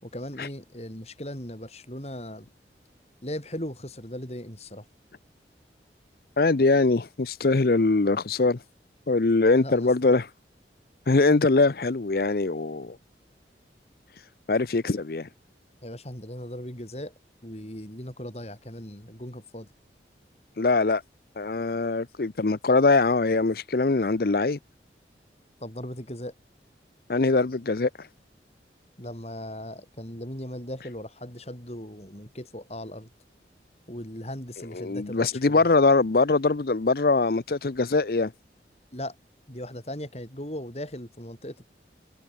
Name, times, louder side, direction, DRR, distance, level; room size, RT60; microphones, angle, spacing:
voice 1, 0.0-2.5 3.2-4.9 9.6-10.2 15.8-17.1 17.4-19.7 25.6-26.3 29.0-33.1 33.9-35.7 38.9-39.2 39.5-41.7, left 1 dB, 35° left, 6.1 m, -38 dB
voice 2, 6.4-8.6 9.1-10.3 11.1-13.0 14.5-15.3 20.6-21.0 21.4-24.6 27.1-27.9 34.7-38.3, left 3 dB, 55° left, 0.7 m, -22 dB
head